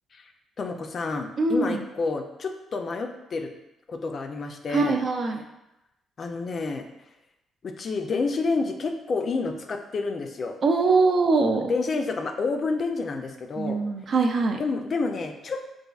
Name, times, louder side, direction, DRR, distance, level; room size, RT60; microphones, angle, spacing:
voice 1, 0.6-3.5 3.9-5.0 6.2-6.9 7.6-10.6 11.6-13.8 14.6-15.6, left 4 dB, 45° left, 5 dB, 0.3 m, -29 dB
voice 2, 1.4-1.8 4.7-5.4 10.6-11.7 13.6-14.6, right 3 dB, 55° right, 4 dB, 0.4 m, -22 dB
4.1 x 2.5 x 2.3 m, 0.92 s
cardioid pair, 90°, 0 cm